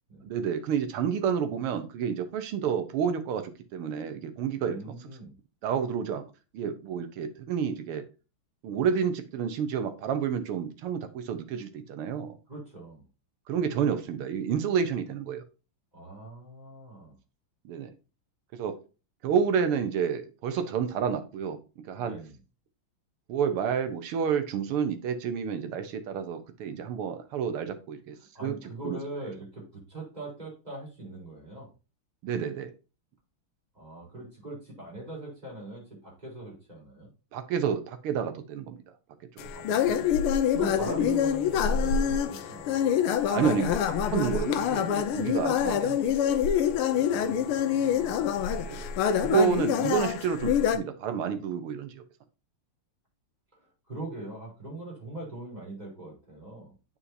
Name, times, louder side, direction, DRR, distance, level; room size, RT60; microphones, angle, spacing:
voice 1, 0.2-4.9 5.6-6.2 6.5-8.0 8.6-12.4 13.5-15.4 17.7-17.9 18.5-18.8 19.2-21.6 21.9-22.2 23.3-28.2 28.4-28.6 28.8-29.0 32.2-32.7 37.3-38.8 40.9-41.0 43.3-46.1 48.6-48.9 49.2-52.0, right 7 dB, 85° right, 9 dB, 1.9 m, -29 dB
voice 2, 4.6-5.3 12.5-13.0 15.9-17.2 22.0-22.4 28.3-31.7 33.7-37.1 39.5-43.0 46.9-48.2 49.5-50.0 53.5-56.7, right 2 dB, 20° right, -4 dB, 4.0 m, -42 dB
sound 1, 39.4-50.8, left 8 dB, 85° left, 1.6 m, -26 dB
8.6 x 5.6 x 2.7 m, 0.31 s
omnidirectional pair, 2.4 m